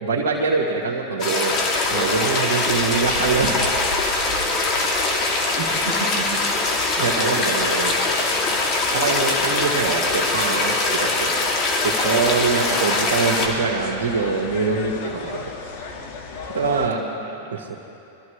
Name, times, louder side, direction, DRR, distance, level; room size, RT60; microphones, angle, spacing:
voice 1, 0.0-3.7 7.0-7.9 8.9-11.3 11.8-15.4 16.5-17.0 17.5-17.7, right 4 dB, 75° right, -4 dB, 1.6 m, -24 dB
sound 1, 1.2-13.5, left 2 dB, 40° left, 2.6 m, -22 dB
sound 2, 1.5-16.9, left 4 dB, 60° left, 1.7 m, -34 dB
voice 2, 5.5-6.3 16.7-17.8, right 5 dB, 60° right, 1 dB, 2.3 m, -34 dB
24.5 x 13.5 x 3.2 m, 2.8 s
hypercardioid pair, 110°, 0 cm